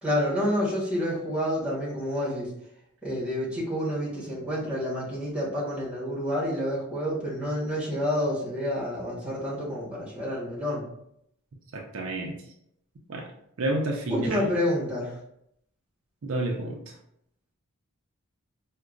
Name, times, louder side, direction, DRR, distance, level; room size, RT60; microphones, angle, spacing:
voice 1, 0.0-2.5 3.0-10.9 14.1-15.1, equal, 5° right, -6 dB, 1.1 m, -29 dB
voice 2, 11.7-12.3 13.1-13.3 13.6-14.5 16.2-17.0, right 2 dB, 60° right, 1 dB, 0.4 m, -30 dB
4.7 x 2.1 x 2.4 m, 0.74 s
head